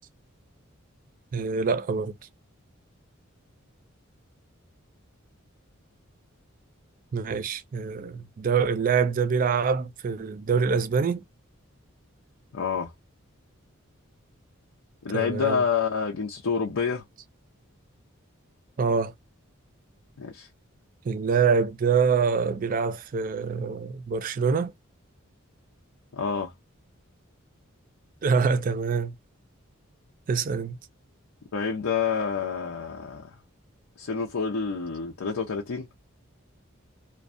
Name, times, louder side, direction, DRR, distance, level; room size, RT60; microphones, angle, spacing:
voice 1, 1.3-2.1 7.1-11.2 15.1-15.6 18.8-19.1 21.0-24.7 28.2-29.1 30.3-30.8, right 5 dB, 40° right, 0.3 m, -25 dB
voice 2, 12.5-12.9 15.0-17.0 20.2-20.5 26.1-26.5 31.5-33.3 34.0-35.9, left 6 dB, 85° left, 0.6 m, -28 dB
2.5 x 2.2 x 2.4 m
head